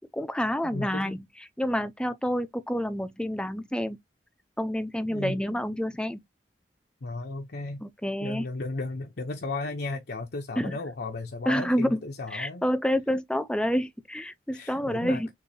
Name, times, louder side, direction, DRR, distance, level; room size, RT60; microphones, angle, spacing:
voice 1, 0.1-1.2 1.6-4.0 4.6-6.2 7.8-8.4 10.6-10.8 11.5-12.0 12.3-15.3, equal, 5° left, 0.5 m, -28 dB
voice 2, 0.6-1.1 5.1-5.4 7.0-7.8 8.2-12.6 14.5-15.2, left 2 dB, 60° left, 0.7 m, -35 dB
6.7 x 2.6 x 2.7 m
head